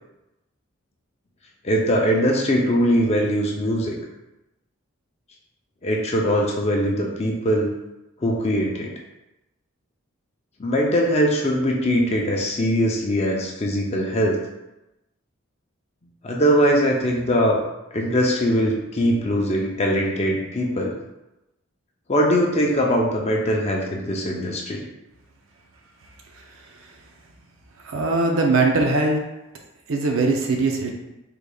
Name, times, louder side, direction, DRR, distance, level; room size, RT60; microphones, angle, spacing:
voice 1, 1.6-4.0 5.8-7.7 8.2-8.9 10.6-14.4 16.2-17.6 17.9-21.0 22.1-24.9, equal, 30° left, -1 dB, 0.5 m, -21 dB
voice 2, 27.9-29.2 29.9-30.9, right 3 dB, 70° right, 2 dB, 0.5 m, -20 dB
3.6 x 3.3 x 2.3 m, 0.95 s
head